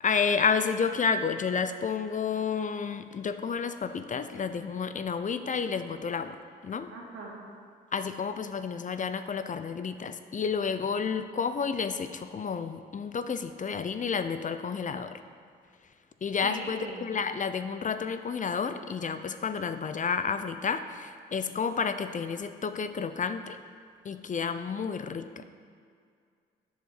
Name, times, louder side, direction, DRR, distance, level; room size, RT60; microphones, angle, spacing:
voice 1, 0.0-6.4 6.6-6.9 7.9-15.2 16.2-23.6 24.0-25.4, left 6 dB, 40° left, 10 dB, 0.5 m, -30 dB
voice 2, 6.9-7.4 16.4-17.0, right 3 dB, 85° right, -3 dB, 1.9 m, -40 dB
7.8 x 6.7 x 4.9 m, 2.1 s
supercardioid pair, 60°, 21 cm